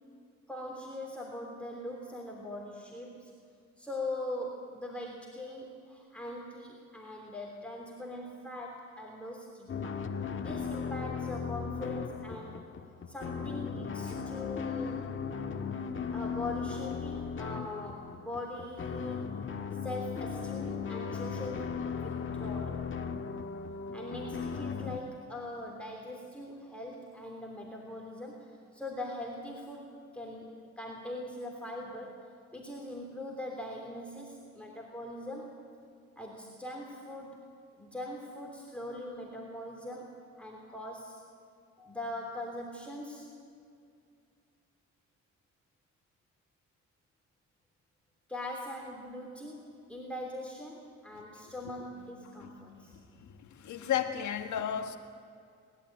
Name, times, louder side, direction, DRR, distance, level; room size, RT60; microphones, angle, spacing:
voice 1, 0.5-3.3 3.8-10.0 10.4-12.6 13.1-15.1 16.1-19.3 19.8-22.9 23.9-35.5 36.2-37.4 37.8-40.1 40.4-41.2 41.8-43.3 48.3-52.9, left 1 dB, 5° left, -1 dB, 3.2 m, -41 dB
sound 1, 9.7-25.0, left 6 dB, 40° left, 1.5 m, -37 dB
voice 2, 53.2-55.0, left 9 dB, 75° left, 6 dB, 1.7 m, -33 dB
29.0 x 12.5 x 9.1 m, 2.4 s
cardioid pair, 90°, 30 cm